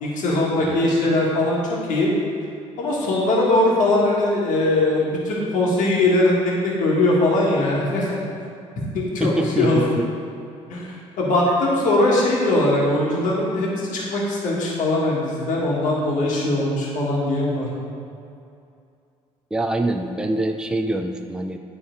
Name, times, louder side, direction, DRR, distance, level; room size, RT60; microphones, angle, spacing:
voice 1, 0.0-2.1 2.8-6.3 6.6-8.2 9.1-9.3 9.6-9.8 10.7-17.7, left 2 dB, 65° left, -4 dB, 1.6 m, -20 dB
voice 2, 0.6-0.9 9.2-10.1 19.5-21.6, right 1 dB, 5° right, 5 dB, 0.5 m, -24 dB
9.2 x 3.7 x 3.9 m, 2.5 s
supercardioid pair, 70°, 14 cm